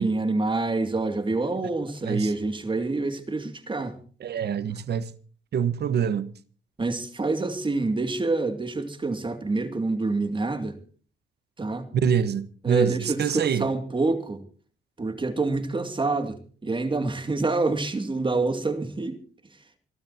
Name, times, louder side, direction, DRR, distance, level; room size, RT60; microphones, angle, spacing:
voice 1, 0.0-4.0 4.7-4.8 6.8-10.7 11.6-11.9 12.6-14.4 15.0-19.2, right 3 dB, 25° right, 2.5 m, -27 dB
voice 2, 4.2-5.1 5.5-6.3 11.9-13.6, right 7 dB, 55° right, 1.3 m, -25 dB
27.0 x 13.0 x 2.9 m
cardioid pair, 90°, 20 cm